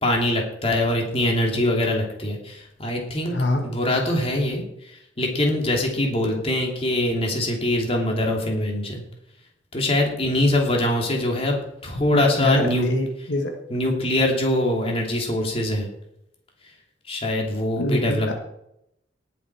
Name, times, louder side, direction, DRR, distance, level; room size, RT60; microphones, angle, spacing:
voice 1, 0.0-3.3 3.6-9.0 9.7-11.6 11.8-12.9 13.7-15.9 17.1-18.3, left 1 dB, 35° left, 0 dB, 2.9 m, -23 dB
voice 2, 3.3-3.7 12.1-13.5 17.8-18.3, left 1 dB, 80° left, 3 dB, 1.6 m, -24 dB
18.5 x 7.7 x 4.8 m, 0.79 s
head